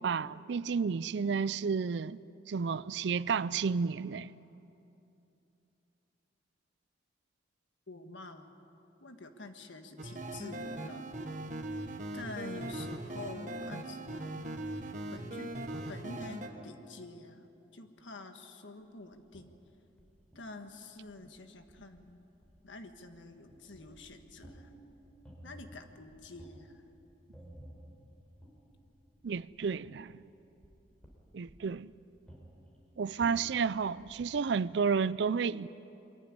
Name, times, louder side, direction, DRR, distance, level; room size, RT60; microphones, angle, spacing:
voice 1, 0.0-2.2 2.5-4.3 29.2-30.2 31.3-31.9 33.0-35.7, right 5 dB, 65° right, 0.4 m, -31 dB
voice 2, 7.9-8.5 9.0-11.1 12.1-14.7 15.1-15.5 15.9-19.5 20.3-22.2 22.6-24.7 25.4-26.8, left 2 dB, 80° left, 1.5 m, -47 dB
sound 1, 10.0-16.5, right 1 dB, 40° right, 1.4 m, -40 dB
sound 2, 19.1-34.3, equal, 5° left, 3.7 m, -55 dB
23.0 x 14.5 x 9.9 m
head